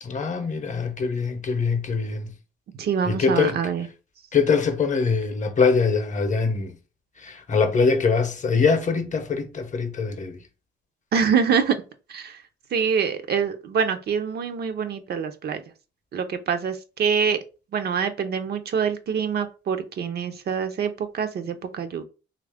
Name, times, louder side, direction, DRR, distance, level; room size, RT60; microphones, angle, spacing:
voice 1, 0.0-2.3 3.0-3.6 4.3-6.7 7.2-10.4, left 5 dB, 40° left, 0.7 m, -23 dB
voice 2, 2.7-3.9 11.1-11.8 12.1-12.4 12.7-15.6 16.1-17.4 17.7-22.0, right 6 dB, 55° right, 0.5 m, -25 dB
3.1 x 2.4 x 3.4 m
cardioid pair, 90°, 20 cm